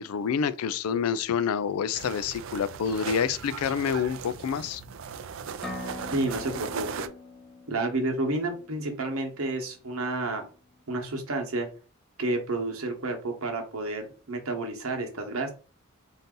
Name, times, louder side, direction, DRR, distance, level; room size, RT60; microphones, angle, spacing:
voice 1, 0.0-4.8, left 7 dB, 90° left, 0.3 m, -28 dB
sound 1, 1.9-7.1, right 7 dB, 60° right, 0.4 m, -38 dB
sound 2, 5.6-9.4, left 2 dB, 5° left, 0.7 m, -42 dB
voice 2, 6.1-7.1 7.7-10.5 10.9-11.7 12.2-15.5, right 2 dB, 80° right, 1.0 m, -30 dB
4.0 x 2.6 x 3.7 m
head